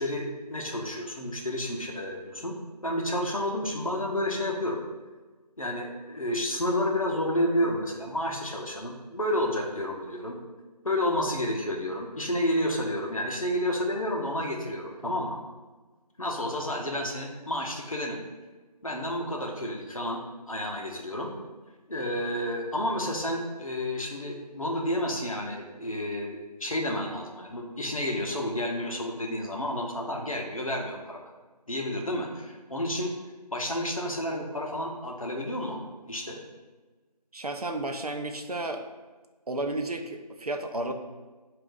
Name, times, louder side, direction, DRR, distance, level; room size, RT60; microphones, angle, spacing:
voice 1, 0.0-2.6 2.8-4.8 5.6-10.5 10.8-15.4 16.2-18.2 18.8-20.2 20.5-21.3 21.9-31.2 31.7-33.1 33.5-35.8 36.1-36.4, left 1 dB, 55° left, 0 dB, 0.7 m, -30 dB
voice 2, 37.3-38.8 39.5-40.9, right 2 dB, 65° right, 5 dB, 0.5 m, -32 dB
4.9 x 2.5 x 3.6 m, 1.3 s
figure-of-eight pair, 175°, 21 cm